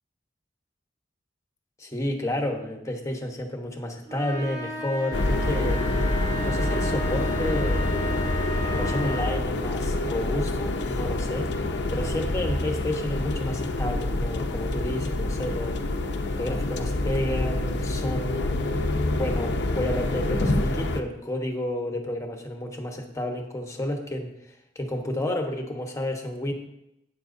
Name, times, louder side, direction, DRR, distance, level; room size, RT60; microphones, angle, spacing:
voice 1, 1.8-5.8 6.4-8.0 8.6-11.5 11.9-15.8 16.4-18.6 19.1-24.3 24.7-26.5, left 1 dB, 15° left, 3 dB, 1.2 m, -31 dB
sound 1, 4.1-9.5, equal, 40° right, 1.9 m, -34 dB
sound 2, 5.1-21.0, left 2 dB, 70° left, 0.7 m, -27 dB
11.5 x 8.7 x 2.7 m, 0.85 s
head